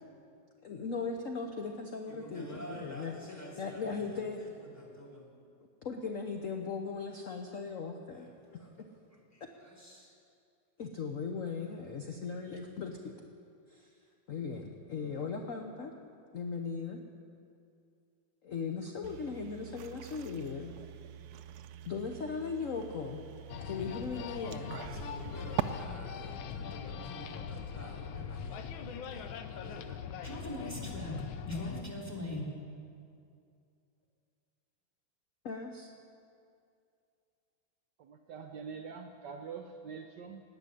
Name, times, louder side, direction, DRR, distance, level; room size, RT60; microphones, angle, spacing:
voice 1, 0.6-4.5 5.8-8.3 9.4-9.5 10.8-13.1 13.7-13.9 14.3-15.9 16.3-17.0 18.4-20.7 21.8-23.2 23.6-24.7 35.4-35.9, left 5 dB, 55° left, 3 dB, 1.0 m, -38 dB
voice 2, 2.2-3.5 5.0-5.3 25.0-31.2 31.5-32.4, left 1 dB, 5° left, -2 dB, 2.8 m, -44 dB
sound 1, 19.0-25.6, right 12 dB, 85° right, 0.8 m, -43 dB
sound 2, 23.5-31.8, left 7 dB, 75° left, 1.5 m, -41 dB
voice 3, 38.0-40.4, right 6 dB, 65° right, 5 dB, 1.2 m, -44 dB
18.0 x 6.8 x 9.8 m, 2.4 s
omnidirectional pair, 2.3 m